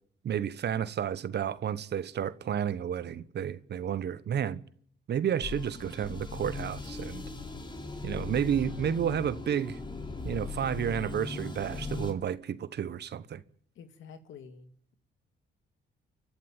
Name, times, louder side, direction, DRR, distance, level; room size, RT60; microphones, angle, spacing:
voice 1, 0.2-4.6 5.1-7.2 8.0-9.8 10.2-13.4, right 9 dB, 55° right, 1.2 m, -31 dB
sound 1, 5.4-12.1, left 3 dB, 25° left, 3.3 m, -39 dB
voice 2, 13.8-14.9, left 6 dB, 75° left, 2.3 m, -49 dB
30.0 x 11.5 x 9.1 m
cardioid pair, 90°, 20 cm